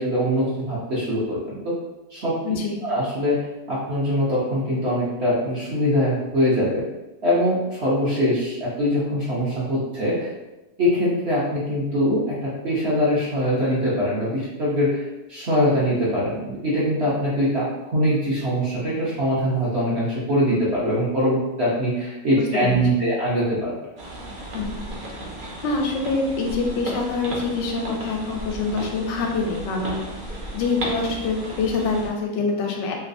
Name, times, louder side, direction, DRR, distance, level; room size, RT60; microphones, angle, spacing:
voice 1, 0.0-1.8 2.1-2.4 2.8-6.8 7.2-10.3 10.8-15.0 15.3-23.8, equal, 50° right, -7 dB, 0.8 m, -23 dB
voice 2, 2.4-2.8 22.5-23.0 24.5-24.8 25.6-32.9, left 3 dB, 90° left, 2 dB, 1.3 m, -25 dB
sound 1, 24.0-32.1, right 1 dB, 80° right, 0.4 m, -34 dB
3.2 x 3.1 x 2.5 m, 1.0 s
omnidirectional pair, 1.9 m